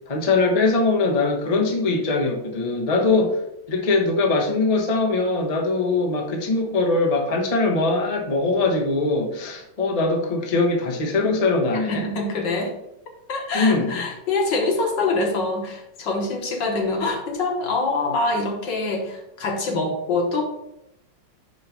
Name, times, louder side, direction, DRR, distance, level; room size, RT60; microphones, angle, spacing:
voice 1, 0.1-3.4 3.7-12.0 13.5-14.0, left 3 dB, 35° left, 1 dB, 0.5 m, -21 dB
voice 2, 11.9-12.8 13.3-20.4, left 3 dB, 65° left, 2 dB, 1.7 m, -25 dB
5.4 x 5.4 x 4.5 m, 0.82 s
omnidirectional pair, 2.3 m